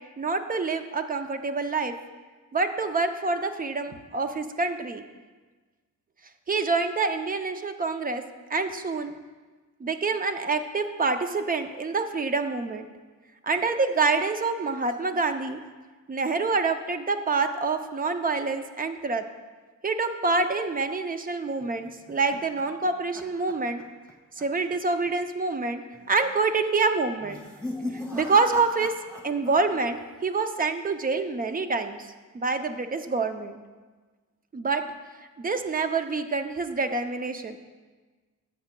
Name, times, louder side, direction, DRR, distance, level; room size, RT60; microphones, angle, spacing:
voice 1, 0.2-1.9 2.5-5.0 6.5-8.2 8.5-9.2 9.8-12.9 13.4-15.6 16.1-19.3 19.8-23.8 24.4-25.8 26.1-27.4 28.1-28.9 29.2-32.1 32.3-33.6 34.5-34.8 35.4-37.6, right 4 dB, 25° right, 8 dB, 0.5 m, -26 dB
sound 1, 21.6-24.1 24.4-24.7 25.1-25.2 25.9-26.3 27.2-29.6 29.9-30.5, left 1 dB, 10° right, 1.6 m, -39 dB
13.0 x 7.3 x 2.2 m, 1.3 s
cardioid pair, 100°, 32 cm